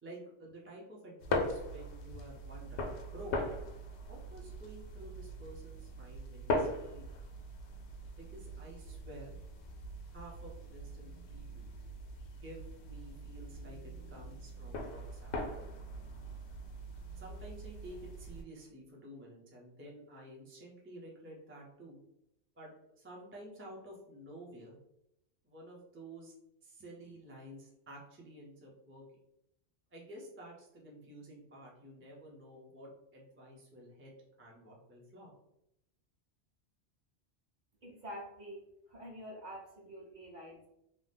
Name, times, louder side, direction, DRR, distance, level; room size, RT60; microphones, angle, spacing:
voice 1, 0.0-3.7 4.0-7.1 8.2-9.4 10.0-11.7 12.3-15.8 17.2-22.0 22.5-24.8 25.4-26.3 26.6-29.0 29.9-34.1 34.4-35.3, right 1 dB, 15° right, -4 dB, 0.5 m, -51 dB
sound 1, 1.2-18.4, left 1 dB, 85° left, 0.9 m, -41 dB
voice 2, 37.8-40.7, equal, 45° right, -3 dB, 0.8 m, -47 dB
2.7 x 2.1 x 3.3 m, 0.83 s
omnidirectional pair, 1.1 m